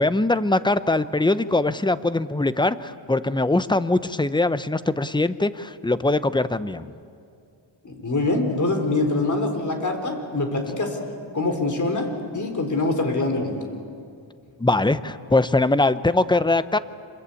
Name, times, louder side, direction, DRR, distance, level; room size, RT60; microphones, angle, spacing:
voice 1, 0.0-6.9 14.6-16.8, left 2 dB, 10° left, 13 dB, 0.7 m, -22 dB
voice 2, 7.8-11.0 11.3-13.6, left 2 dB, 40° left, 5 dB, 3.8 m, -24 dB
26.5 x 22.5 x 8.4 m, 2.3 s
wide cardioid pair, 120°, 47 cm